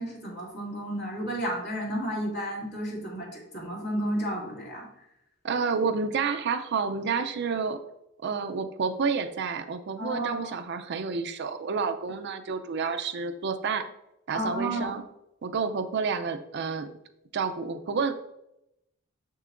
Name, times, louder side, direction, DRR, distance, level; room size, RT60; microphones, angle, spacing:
voice 1, 0.0-4.9 10.0-10.5 14.3-14.9, right 1 dB, 55° left, -4 dB, 2.4 m, -32 dB
voice 2, 5.4-7.8 8.2-13.9 14.3-15.0 15.4-16.9 17.3-18.1, right 5 dB, 55° right, 9 dB, 0.5 m, -29 dB
6.6 x 6.5 x 2.5 m, 0.83 s
head